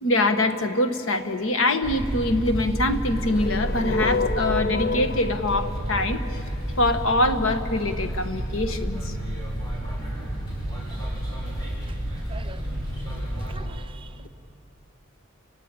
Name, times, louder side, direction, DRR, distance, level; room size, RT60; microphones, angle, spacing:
voice 1, 0.0-6.2 6.8-9.1, left 2 dB, 70° left, 8 dB, 1.4 m, -24 dB
sound 1, 1.8-13.6, right 1 dB, 20° left, 7.5 m, -30 dB
sound 2, 3.0-7.1, left 3 dB, 45° left, 0.6 m, -30 dB
voice 2, 10.9-11.5 11.9-12.8 13.5-14.3, right 4 dB, 25° right, 9 dB, 0.7 m, -46 dB
29.5 x 16.0 x 9.8 m, 2.5 s
head